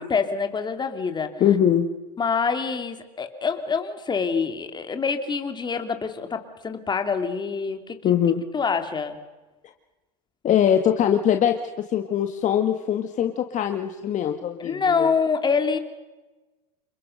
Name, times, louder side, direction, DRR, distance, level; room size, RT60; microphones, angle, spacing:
voice 1, 0.1-1.4 2.2-8.0 8.5-9.2 14.6-15.8, left 5 dB, 20° left, 7 dB, 2.9 m, -26 dB
voice 2, 1.4-1.9 8.0-8.4 10.4-15.1, left 9 dB, 35° left, 6 dB, 1.7 m, -22 dB
28.5 x 21.0 x 6.6 m, 1.2 s
supercardioid pair, 115°, 21 cm